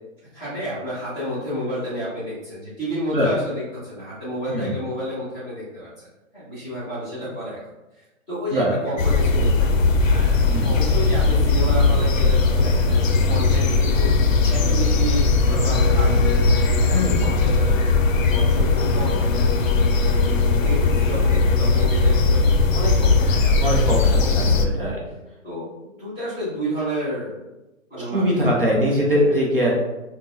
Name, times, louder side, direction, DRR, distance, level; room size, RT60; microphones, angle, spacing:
voice 1, 0.3-6.1 6.3-7.6 8.3-14.1 14.5-16.4 16.8-18.0 18.3-24.6 25.4-25.7 26.0-27.3 27.9-28.8 29.3-29.4, equal, 5° left, -14 dB, 0.7 m, -31 dB
voice 2, 4.5-4.8 8.5-8.8 10.5-10.7 16.9-17.2 23.6-25.0 28.1-29.7, equal, 45° right, -3 dB, 0.6 m, -22 dB
sound 1, 9.0-24.7, left 3 dB, 80° left, 0.6 m, -18 dB
4.1 x 2.0 x 2.7 m, 1.0 s
hypercardioid pair, 180°, 39 cm